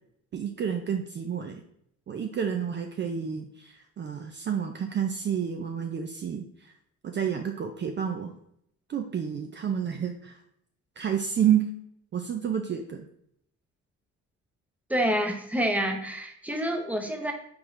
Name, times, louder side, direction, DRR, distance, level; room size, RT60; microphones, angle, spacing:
voice 1, 0.3-1.6 2.1-6.7 7.0-8.3 8.9-10.4 11.0-11.7 12.1-13.1, right 8 dB, 40° right, 4 dB, 0.5 m, -29 dB
voice 2, 14.9-17.3, equal, 5° right, 3 dB, 0.8 m, -28 dB
4.6 x 3.7 x 3.1 m, 0.72 s
cardioid pair, 90°, 30 cm